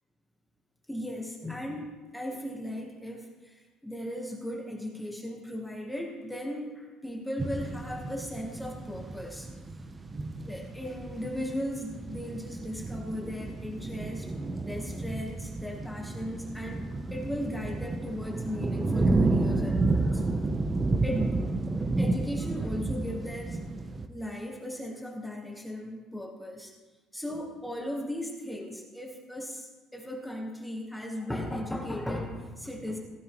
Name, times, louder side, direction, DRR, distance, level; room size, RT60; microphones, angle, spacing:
voice 1, 0.9-9.5 10.4-14.3 14.6-20.5 21.0-21.4 21.8-23.6 24.1-26.7 27.1-33.0, left 1 dB, 5° left, 0 dB, 1.1 m, -37 dB
sound 1, 7.4-24.1, right 3 dB, 15° right, 0.6 m, -31 dB
16.0 x 12.5 x 3.0 m, 1.3 s
cardioid pair, 170°, 0 cm